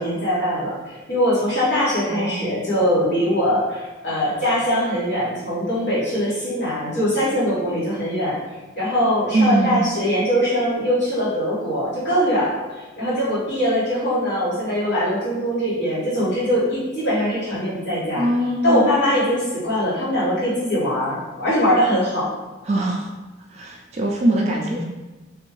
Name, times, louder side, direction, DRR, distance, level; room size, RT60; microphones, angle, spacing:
voice 1, 0.0-8.4 8.7-18.3 18.6-22.3, equal, 55° left, -10 dB, 1.4 m, -22 dB
voice 2, 2.1-2.5 9.3-9.9 18.1-18.9 22.6-23.1 23.5-24.8, right 1 dB, 30° right, 0 dB, 0.3 m, -22 dB
3.4 x 2.5 x 3.1 m, 1.2 s
head